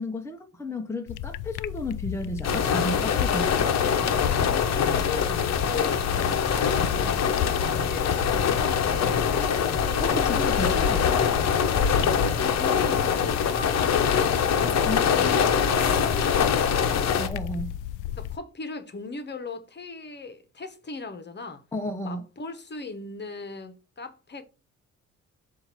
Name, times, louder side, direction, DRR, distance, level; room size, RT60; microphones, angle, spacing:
voice 1, 0.0-3.7 10.0-11.3 14.9-15.4 17.2-17.7 21.7-22.2, left 1 dB, 10° left, 1.0 m, -33 dB
sound 1, 1.1-18.4, left 12 dB, 85° left, 0.5 m, -36 dB
sound 2, 2.4-17.3, left 7 dB, 60° left, 1.0 m, -23 dB
voice 2, 4.7-9.5 12.4-17.2 18.2-21.6 22.0-24.4, left 4 dB, 35° left, 1.3 m, -39 dB
7.7 x 2.8 x 6.0 m
cardioid pair, 90°, 30 cm